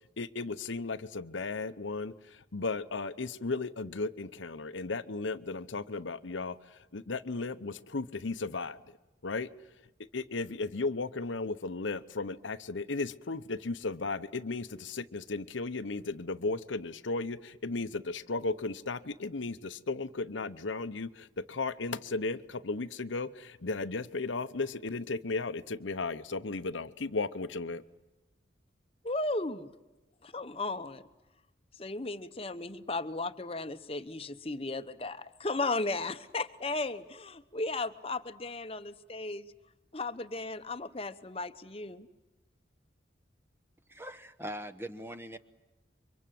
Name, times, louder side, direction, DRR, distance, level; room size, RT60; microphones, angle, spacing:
voice 1, 0.2-9.0 9.2-9.5 10.1-27.8, left 3 dB, 85° left, 11 dB, 0.9 m, -35 dB
voice 2, 29.0-29.7 30.2-31.0 31.8-39.5 39.9-42.1, left 2 dB, 30° left, 11 dB, 1.0 m, -35 dB
voice 3, 43.9-45.4, right 1 dB, 10° right, 8 dB, 1.0 m, -41 dB
29.0 x 24.5 x 7.7 m, 1.1 s
head